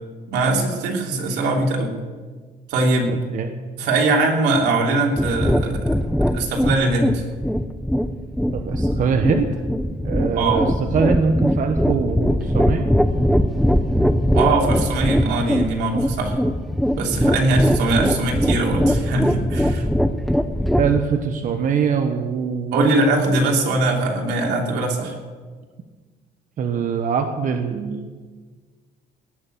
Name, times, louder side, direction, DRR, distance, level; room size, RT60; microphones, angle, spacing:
voice 1, 0.3-1.9 2.7-3.1 3.8-5.8 6.3-7.2 10.3-10.6 14.3-16.4 16.9-19.9 22.7-25.2, right 2 dB, 85° right, 0 dB, 3.2 m, -21 dB
voice 2, 3.1-3.5 8.5-9.5 10.0-12.9 20.8-22.9 26.6-28.1, right 6 dB, 50° right, 6 dB, 1.1 m, -23 dB
sound 1, 5.2-21.0, equal, ahead, 0.7 m, -21 dB
18.5 x 6.7 x 9.2 m, 1.5 s
cardioid pair, 110°, 17 cm